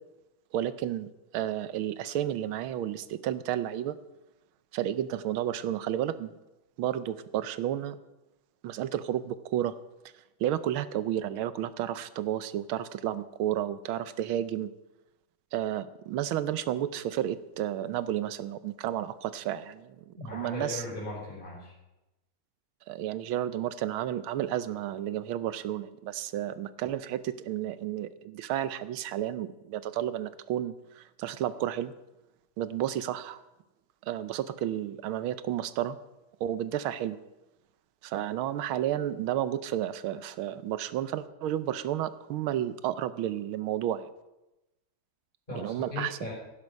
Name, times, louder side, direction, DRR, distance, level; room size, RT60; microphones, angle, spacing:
voice 1, 0.5-4.0 4.7-6.3 6.8-8.0 8.6-9.7 10.4-14.7 15.5-20.8 22.9-31.9 32.6-33.4 34.0-36.0 36.4-37.2 38.0-44.1 45.5-46.2, right 11 dB, 85° right, 14 dB, 1.6 m, -32 dB
voice 2, 20.1-21.7 45.5-46.3, left 2 dB, 25° left, -6 dB, 5.5 m, -38 dB
15.5 x 11.0 x 5.3 m, 0.98 s
omnidirectional pair, 2.2 m